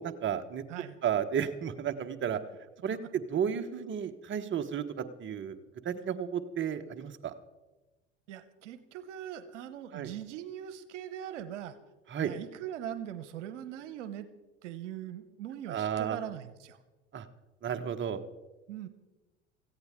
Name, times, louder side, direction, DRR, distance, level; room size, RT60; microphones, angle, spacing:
voice 1, 0.0-0.6 1.0-2.4 2.8-5.6 5.8-7.3 9.9-10.1 12.1-12.3 15.7-16.2 17.1-17.3 17.6-18.2, right 8 dB, 30° right, 7 dB, 1.2 m, -33 dB
voice 2, 8.3-11.8 12.2-14.3 14.6-16.8 18.7-18.9, right 11 dB, 75° right, 12 dB, 1.0 m, -41 dB
17.5 x 15.0 x 3.7 m, 1.1 s
hypercardioid pair, 75°, 36 cm